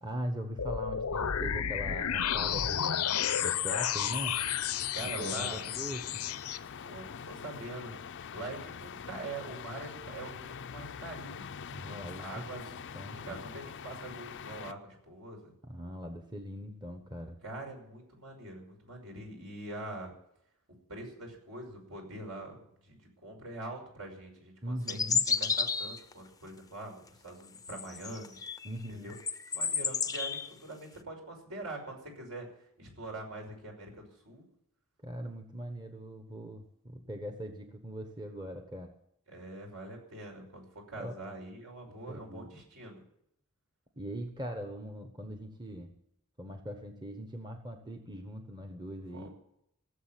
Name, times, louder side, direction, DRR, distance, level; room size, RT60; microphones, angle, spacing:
voice 1, 0.0-4.4 5.0-6.2 11.7-13.4 15.6-17.4 24.6-25.2 28.6-29.2 35.0-39.0 41.0-41.2 41.8-42.5 44.0-46.0 46.4-49.3, equal, 20° right, 5 dB, 1.2 m, -41 dB
sound 1, 0.6-6.6, left 9 dB, 85° left, 0.8 m, -32 dB
sound 2, 2.4-14.7, left 7 dB, 55° left, 0.5 m, -45 dB
voice 2, 4.9-5.6 6.8-8.0 8.3-11.5 11.8-15.5 17.4-20.1 20.9-22.9 23.2-28.4 28.9-29.1 29.5-32.5 32.8-34.4 39.3-43.0 49.1-49.3, right 2 dB, 70° right, 1 dB, 5.9 m, -44 dB
sound 3, 24.9-26.1 27.6-28.7 29.1-30.5, left 6 dB, 15° left, 0.7 m, -31 dB
17.5 x 7.5 x 9.1 m, 0.75 s
head